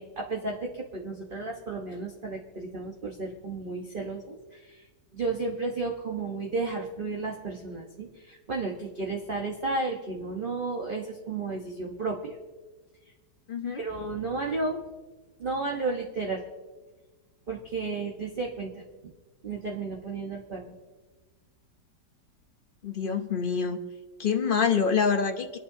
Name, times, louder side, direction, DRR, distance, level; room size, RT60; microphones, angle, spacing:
voice 1, 0.0-4.9 5.1-12.4 13.7-14.9 15.4-16.4 17.5-19.1 19.4-20.8, right 3 dB, 35° right, -1 dB, 1.2 m, -33 dB
voice 2, 13.5-13.8 22.8-23.8 24.2-25.6, left 6 dB, 45° left, 6 dB, 0.7 m, -26 dB
26.0 x 11.0 x 2.8 m, 1.3 s
omnidirectional pair, 1.9 m